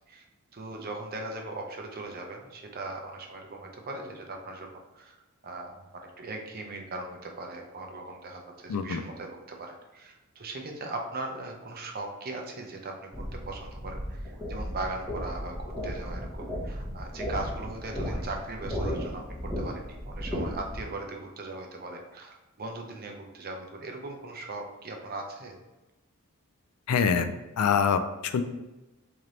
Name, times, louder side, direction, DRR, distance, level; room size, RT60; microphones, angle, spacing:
voice 1, 0.5-13.1 13.5-19.2 19.6-25.5, right 2 dB, 45° right, 2 dB, 0.6 m, -39 dB
voice 2, 8.7-9.0 26.9-28.4, left 6 dB, 70° left, 9 dB, 0.4 m, -25 dB
sound 1, 13.1-20.8, equal, 5° right, 0.8 m, -35 dB
3.2 x 2.9 x 3.8 m, 1.1 s
head